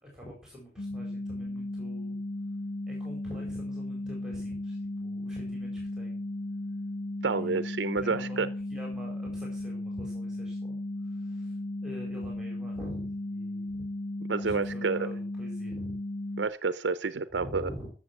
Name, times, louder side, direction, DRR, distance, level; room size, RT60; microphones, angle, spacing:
voice 1, 0.0-2.2 2.9-6.2 7.3-7.6 8.0-10.8 11.1-13.9 14.3-15.9 17.3-17.9, equal, 5° right, 4.3 m, -45 dB
sound 1, 0.8-16.5, left 1 dB, 70° left, 0.7 m, -35 dB
voice 2, 7.2-8.5 14.3-15.1 16.4-17.6, right 4 dB, 80° right, 0.6 m, -29 dB
14.0 x 7.2 x 6.0 m
head